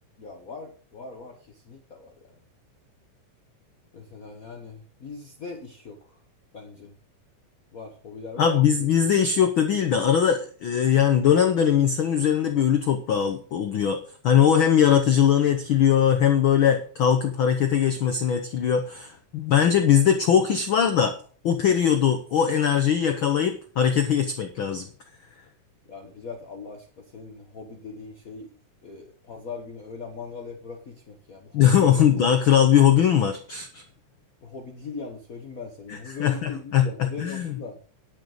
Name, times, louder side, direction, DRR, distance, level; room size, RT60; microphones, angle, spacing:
voice 1, 0.2-2.3 3.9-6.2 6.5-6.9 7.7-8.9 25.9-28.5 28.8-32.1 34.4-37.8, left 4 dB, 65° left, 2 dB, 0.8 m, -40 dB
voice 2, 8.4-14.0 14.2-21.1 21.4-24.9 31.5-33.8 35.9-37.5, left 8 dB, 85° left, 6 dB, 1.1 m, -21 dB
10.5 x 6.5 x 6.4 m, 0.43 s
omnidirectional pair, 3.6 m